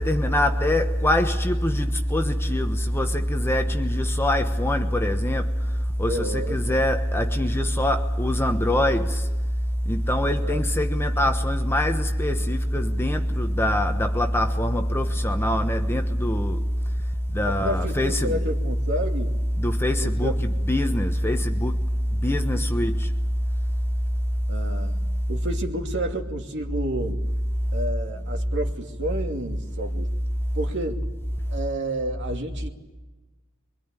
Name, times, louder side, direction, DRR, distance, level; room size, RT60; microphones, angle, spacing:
voice 1, 0.0-5.5 6.0-9.2 9.9-16.6 17.3-18.4 19.6-21.8 22.2-23.1, left 1 dB, 10° left, 1.2 m, -23 dB
voice 2, 6.1-6.9 10.3-10.6 17.4-19.3 20.0-20.4 24.5-27.2 27.7-30.1 30.5-31.1 31.5-32.7, right 1 dB, 60° right, 2.7 m, -31 dB
24.5 x 24.0 x 9.0 m
head